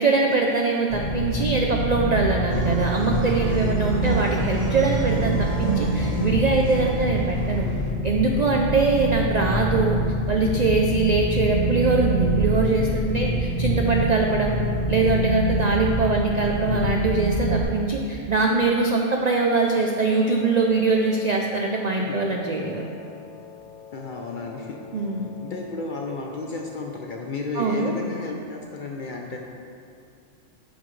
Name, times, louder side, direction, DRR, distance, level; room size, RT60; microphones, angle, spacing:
voice 1, 0.0-7.7 8.0-10.0 10.3-14.6 14.9-22.9 24.9-25.3 27.6-27.9, right 3 dB, 65° right, 1 dB, 0.4 m, -22 dB
sound 1, 0.9-17.6, right 1 dB, 20° left, 1.2 m, -25 dB
sound 2, 2.5-7.9, right 3 dB, 35° right, 0.7 m, -31 dB
voice 2, 3.9-4.5 22.0-22.3 23.9-24.8 25.3-29.4, left 3 dB, 55° left, 1 dB, 0.5 m, -33 dB
Wind instrument woodwind instrument, 19.6-26.9, left 8 dB, 80° left, 1.1 m, -44 dB
9.4 x 5.8 x 3.2 m, 2.5 s
omnidirectional pair, 1.3 m